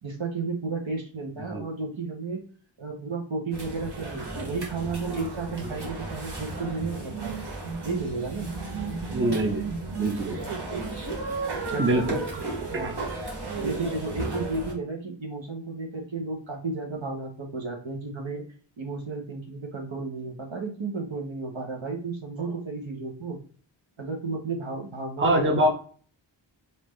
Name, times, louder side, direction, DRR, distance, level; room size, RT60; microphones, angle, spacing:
voice 1, 0.0-2.4 2.8-7.3 7.8-8.5 11.7-12.3 12.7-13.0 13.6-18.4 18.8-23.4 24.0-25.7, right 3 dB, 75° right, 2 dB, 1.1 m, -33 dB
sound 1, 3.5-14.7, right 3 dB, 60° right, 1.2 m, -34 dB
voice 2, 9.1-9.7 10.0-10.4 11.8-12.0 12.7-12.9 25.2-25.7, right 1 dB, 25° right, 1 dB, 0.8 m, -24 dB
3.6 x 2.8 x 3.1 m, 0.43 s
wide cardioid pair, 45°, 46 cm